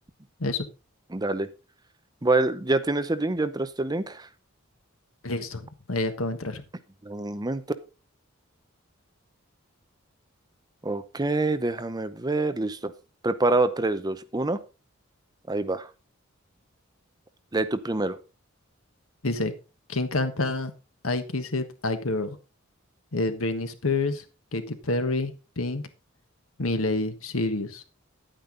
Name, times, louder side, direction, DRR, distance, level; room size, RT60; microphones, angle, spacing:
voice 1, 1.1-1.5 2.2-4.3 7.0-7.6 10.8-12.9 13.2-14.6 15.5-15.9 17.5-18.2, right 2 dB, 20° right, 12 dB, 0.7 m, -26 dB
voice 2, 5.2-6.6 19.2-19.5 19.9-20.7 21.0-22.4 23.1-24.2 24.5-25.8 26.6-27.8, left 2 dB, 85° left, 9 dB, 1.4 m, -28 dB
10.5 x 9.0 x 3.9 m, 0.31 s
head